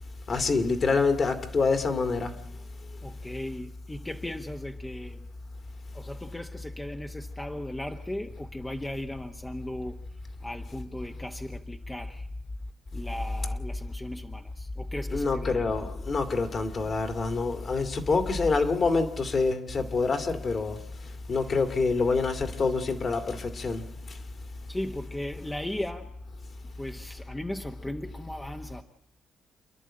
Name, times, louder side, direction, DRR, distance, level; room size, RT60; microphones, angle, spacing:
voice 1, 0.3-2.4 15.1-20.8 21.3-23.8, left 4 dB, 45° left, 2.3 m, -26 dB
voice 2, 3.0-5.3 5.9-10.0 10.4-12.3 12.9-15.7 24.7-26.1 26.8-28.8, left 1 dB, 10° left, 1.1 m, -37 dB
28.5 x 11.0 x 8.8 m
cardioid pair, 90°, 0 cm